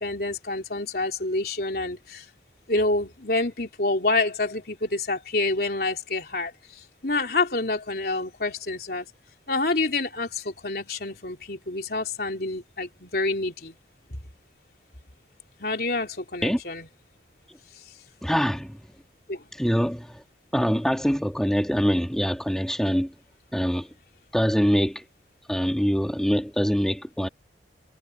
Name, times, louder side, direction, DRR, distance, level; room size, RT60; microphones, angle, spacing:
voice 1, 0.0-2.3 2.7-9.1 9.5-13.8 14.1-14.2 15.6-16.9 19.3-19.4, left 2 dB, 55° left, 3.7 m, -27 dB
voice 2, 18.2-18.8 19.6-20.2 20.5-23.1 23.5-23.9 24.3-25.0 25.5-27.3, equal, 5° left, 2.2 m, -24 dB
head